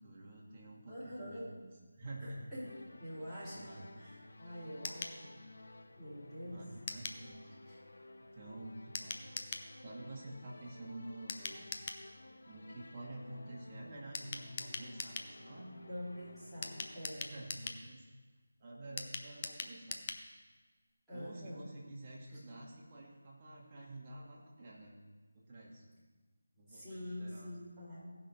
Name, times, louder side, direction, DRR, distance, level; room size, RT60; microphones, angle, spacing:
voice 1, 0.0-2.5 3.5-3.9 6.4-7.5 8.3-9.2 9.8-11.7 12.5-15.8 16.6-16.8 17.1-18.0 18.6-20.0 21.1-25.0 25.3-26.0 26.6-27.5, right 1 dB, 30° right, -4 dB, 2.1 m, -49 dB
voice 2, 0.9-1.5 2.2-2.7 3.0-5.3 6.0-6.6 7.6-7.8 15.8-17.3 21.1-21.6 22.3-22.4 26.7-28.1, equal, ahead, -18 dB, 3.5 m, -46 dB
sound 1, 2.6-17.0, left 2 dB, 70° left, 0.8 m, -55 dB
sound 2, 4.8-5.2 6.9-7.2 8.9-9.7 11.3-12.0 14.1-15.3 16.6-17.8 19.0-20.2 20.5-20.6 20.9-21.0, left 5 dB, 30° left, 0.6 m, -42 dB
16.5 x 5.8 x 4.5 m, 1.3 s
figure-of-eight pair, 165°, 0 cm